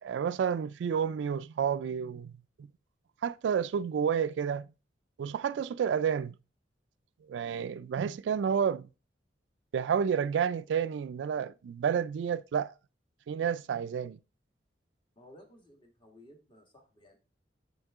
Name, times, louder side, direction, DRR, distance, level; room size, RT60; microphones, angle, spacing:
voice 1, 0.0-2.3 3.2-4.7 5.2-6.3 7.3-8.9 9.7-12.7 13.3-14.2, right 7 dB, 70° right, 0.3 m, -30 dB
voice 2, 15.1-17.2, left 1 dB, 25° left, 1.6 m, -56 dB
6.8 x 6.5 x 3.5 m
head